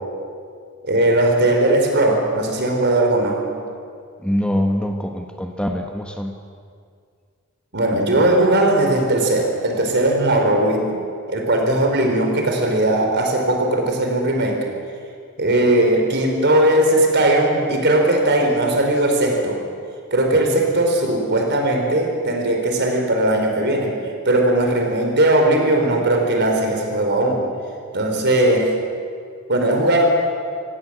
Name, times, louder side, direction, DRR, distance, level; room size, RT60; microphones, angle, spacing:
voice 1, 0.8-3.6 7.7-10.9 11.3-14.6 15.4-19.6 20.1-23.9 24.2-27.4 27.9-28.7 29.5-30.1, right 1 dB, 55° right, 2 dB, 4.4 m, -18 dB
voice 2, 4.2-6.3 20.5-20.6, equal, 5° left, 4 dB, 1.2 m, -24 dB
26.5 x 17.0 x 7.7 m, 2.2 s
head